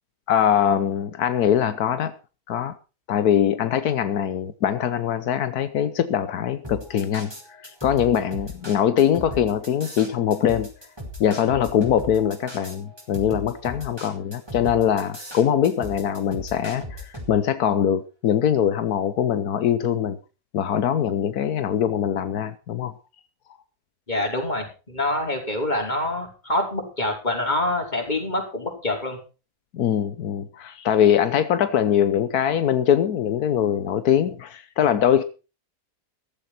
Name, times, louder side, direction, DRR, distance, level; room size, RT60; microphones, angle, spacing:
voice 1, 0.3-2.1 2.5-2.7 3.1-7.3 7.6-10.7 11.2-20.2 20.5-22.9 29.7-35.2, left 9 dB, 85° left, 1.4 m, -22 dB
sound 1, 6.6-17.3, left 1 dB, 15° right, 5.0 m, -37 dB
voice 2, 24.1-29.2, left 1 dB, 30° left, 4.9 m, -26 dB
14.5 x 14.0 x 4.3 m
omnidirectional pair, 1.6 m